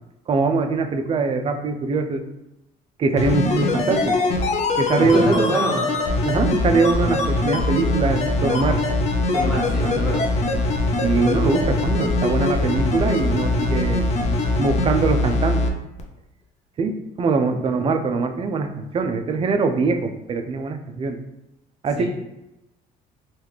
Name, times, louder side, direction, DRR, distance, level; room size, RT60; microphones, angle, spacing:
voice 1, 0.3-2.2 3.0-4.2 4.8-5.6 6.2-8.8 9.8-10.0 11.0-14.1 14.6-15.7 16.8-21.2 21.8-22.1, right 4 dB, 35° right, 6 dB, 0.3 m, -22 dB
sound 1, 3.1-15.7 16.0-16.1, left 2 dB, 40° left, 0.5 m, -22 dB
voice 2, 5.0-5.8 9.3-10.2 22.0-22.1, right 1 dB, ahead, -7 dB, 1.3 m, -25 dB
2.9 x 2.3 x 3.4 m, 0.92 s
cardioid pair, 110°, 17 cm